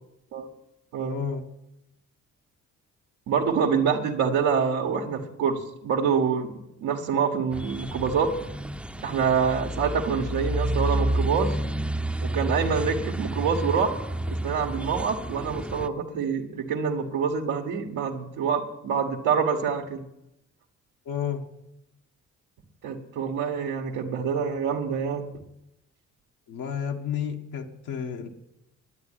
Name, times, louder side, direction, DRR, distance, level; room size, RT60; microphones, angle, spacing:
voice 1, 1.1-1.4 21.0-21.4 26.5-28.3, left 8 dB, 80° left, 2 dB, 1.6 m, -31 dB
voice 2, 3.3-6.5 6.8-8.3 9.0-11.6 12.2-14.0 14.3-20.0 22.8-25.3, right 6 dB, 85° right, 0 dB, 1.6 m, -26 dB
sound 1, 7.5-15.9, right 1 dB, 5° right, 0.6 m, -30 dB
10.5 x 8.9 x 9.9 m, 0.84 s
cardioid pair, 90°, 30 cm